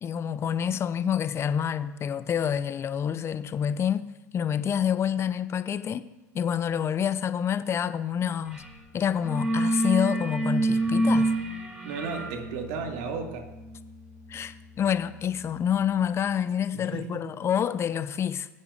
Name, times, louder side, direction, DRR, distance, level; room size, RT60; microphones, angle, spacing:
voice 1, 0.0-4.0 4.3-6.1 6.3-8.6 8.9-11.3 14.3-18.5, left 8 dB, 30° left, 0.6 m, -27 dB
sound 1, 8.5-8.8 9.0-15.7, right 1 dB, 15° right, 2.8 m, -29 dB
voice 2, 11.8-13.5 16.7-17.3, right 5 dB, 60° right, 1.8 m, -34 dB
20.5 x 9.2 x 2.5 m
hypercardioid pair, 85°, 9 cm